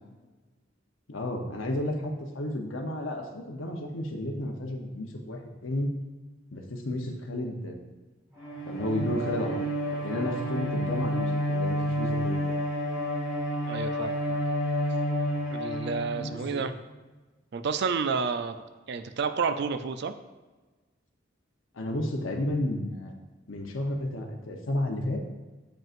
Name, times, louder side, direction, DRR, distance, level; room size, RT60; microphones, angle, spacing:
voice 1, 1.1-5.9 6.5-7.9 8.7-12.5 16.2-16.6 21.7-23.1 23.5-25.2, left 1 dB, 80° left, 2 dB, 0.8 m, -32 dB
Bowed string instrument, 8.4-16.8, equal, 15° right, 1.8 m, -30 dB
voice 2, 13.6-14.4 15.5-16.7 17.5-18.6 18.9-20.1, right 5 dB, 60° right, 10 dB, 0.4 m, -30 dB
7.4 x 5.3 x 2.5 m, 1.2 s
head